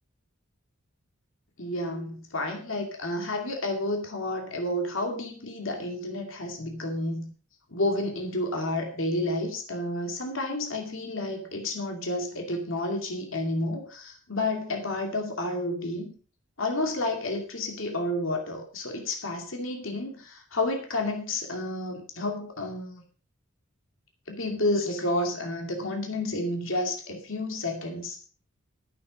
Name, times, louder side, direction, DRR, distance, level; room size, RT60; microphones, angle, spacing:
voice 1, 1.6-7.3 7.7-16.1 16.6-23.0 24.3-28.2, left 1 dB, 70° left, 2 dB, 2.5 m, -30 dB
11.0 x 9.9 x 5.2 m, 0.40 s
head